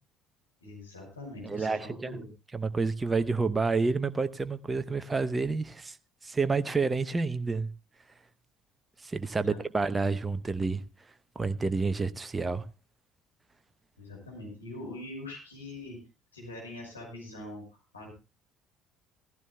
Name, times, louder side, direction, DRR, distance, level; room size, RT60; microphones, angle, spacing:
voice 1, 0.6-2.3 9.4-9.6 14.0-16.0 16.3-17.6 17.9-18.1, left 2 dB, 85° left, 6.0 m, -43 dB
voice 2, 1.4-2.2 2.5-6.0 6.2-7.7 9.0-10.8 11.4-12.6, right 4 dB, 20° right, 0.8 m, -29 dB
17.0 x 15.5 x 2.2 m
figure-of-eight pair, 55°, 0 cm